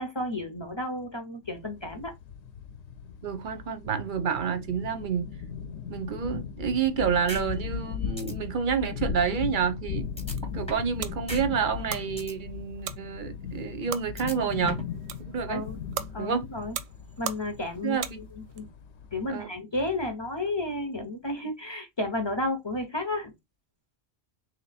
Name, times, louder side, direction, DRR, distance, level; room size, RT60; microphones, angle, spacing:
voice 1, 0.0-2.1 15.5-15.8 16.1-16.8 17.2-18.7 19.1-23.3, left 2 dB, 30° left, 0.6 m, -32 dB
sound 1, 1.4-19.3, left 6 dB, 70° left, 0.8 m, -38 dB
voice 2, 3.2-5.2 5.9-10.1 10.5-14.8 15.3-15.6 16.2-16.4 17.8-18.2 19.3-19.5, right 7 dB, 50° right, 0.7 m, -29 dB
sound 2, 7.3-7.4 7.8-7.9 8.2-8.3 10.2-10.9 11.3-11.4 11.8-12.3 14.2-14.9, equal, 5° left, 0.8 m, -37 dB
sound 3, 10.0-18.6, right 10 dB, 85° right, 0.9 m, -41 dB
3.1 x 2.9 x 4.0 m
omnidirectional pair, 1.3 m